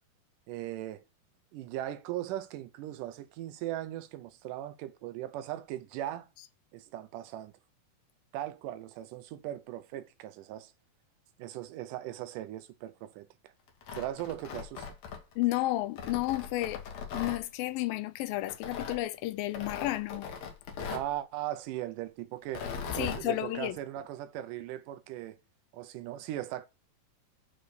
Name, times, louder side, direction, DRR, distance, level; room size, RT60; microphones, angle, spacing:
voice 1, 0.5-1.0 1.5-6.3 6.7-7.5 8.3-10.7 11.4-13.5 13.9-14.9 20.9-22.7 23.0-25.4 25.7-26.7, right 13 dB, 80° right, 2.1 m, -38 dB
Tearing, 13.7-15.5 16.0-17.4 18.5-19.0 19.5-21.1 22.4-23.2, left 6 dB, 60° left, 2.0 m, -39 dB
voice 2, 15.4-16.8 17.1-20.3 23.0-23.8, left 16 dB, 85° left, 2.4 m, -32 dB
6.3 x 4.4 x 6.6 m
omnidirectional pair, 4.0 m